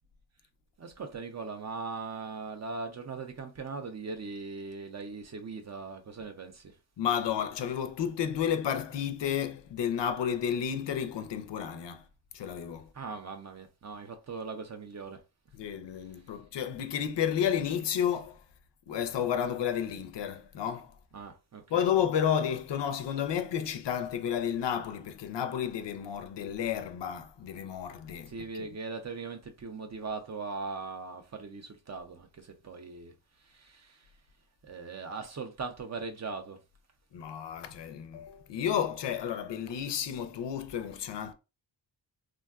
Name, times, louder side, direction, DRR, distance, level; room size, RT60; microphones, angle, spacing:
voice 1, 0.8-6.7 12.9-15.2 21.1-21.9 28.3-33.1 33.4-34.1 34.6-36.6, right 4 dB, 40° right, 0.4 m, -40 dB
voice 2, 7.0-12.0 12.3-12.9 15.5-18.4 18.9-20.9 21.7-28.3 28.6-28.7 37.1-41.3, left 8 dB, 70° left, 0.5 m, -31 dB
3.4 x 2.2 x 2.3 m
wide cardioid pair, 155°, 44 cm